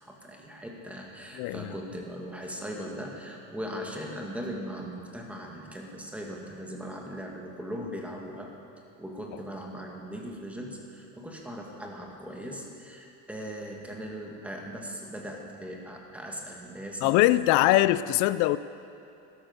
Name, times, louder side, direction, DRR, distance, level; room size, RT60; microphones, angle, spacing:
voice 1, 0.0-8.5 9.0-17.2, equal, 5° right, 0 dB, 1.3 m, -39 dB
voice 2, 1.3-1.7 17.0-18.6, left 16 dB, 60° left, 16 dB, 0.5 m, -22 dB
13.0 x 12.5 x 5.3 m, 2.6 s
cardioid pair, 160°, 34 cm